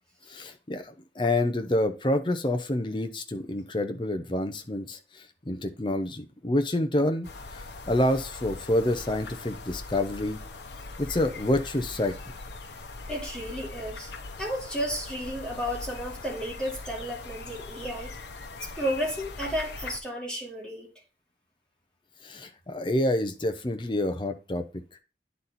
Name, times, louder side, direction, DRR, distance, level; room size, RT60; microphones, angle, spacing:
voice 1, 0.3-10.4 11.0-12.1 22.2-24.6, left 1 dB, 25° left, 0.7 m, -28 dB
sound 1, 7.2-20.0, left 3 dB, 80° left, 0.9 m, -41 dB
voice 2, 13.1-14.1 14.4-18.1 18.8-20.9, equal, 5° left, 2.6 m, -32 dB
9.5 x 4.1 x 4.1 m
head